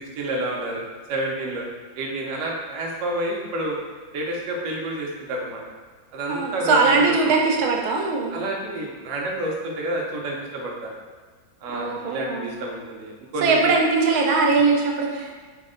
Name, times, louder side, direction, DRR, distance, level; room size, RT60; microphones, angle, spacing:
voice 1, 0.2-0.8 1.1-1.6 1.9-3.8 4.1-5.6 6.1-7.4 8.3-10.9 11.6-13.7 14.5-14.7, right 1 dB, 70° right, -2 dB, 0.8 m, -29 dB
voice 2, 6.3-8.3 11.7-12.6 13.4-15.3, right 4 dB, 90° right, 1 dB, 1.4 m, -21 dB
4.3 x 2.1 x 3.7 m, 1.5 s
omnidirectional pair, 2.2 m